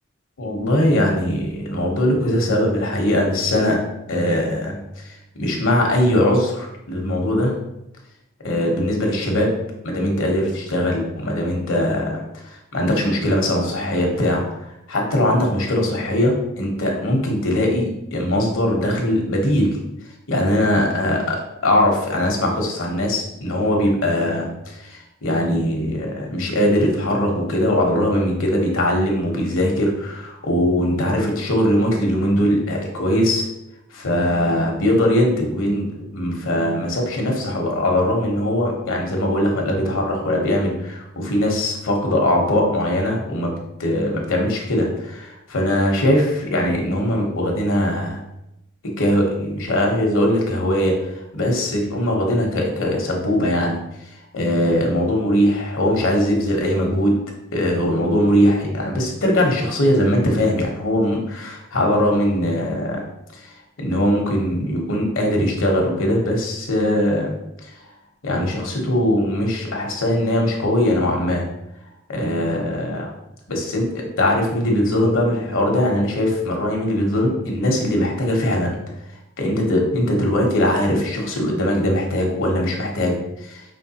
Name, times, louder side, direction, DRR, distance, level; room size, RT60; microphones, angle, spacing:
voice 1, 0.4-3.8 4.1-7.5 8.4-9.6 9.8-19.8 20.3-33.5 33.9-43.5 43.8-48.2 49.0-53.8 54.0-57.2 57.5-63.0 63.4-63.5 63.8-67.3 67.6-67.8 68.2-71.5 72.1-73.1 73.5-78.8 79.4-83.6, left 1 dB, 65° left, 1 dB, 1.0 m, -21 dB
5.2 x 3.2 x 2.8 m, 0.85 s
head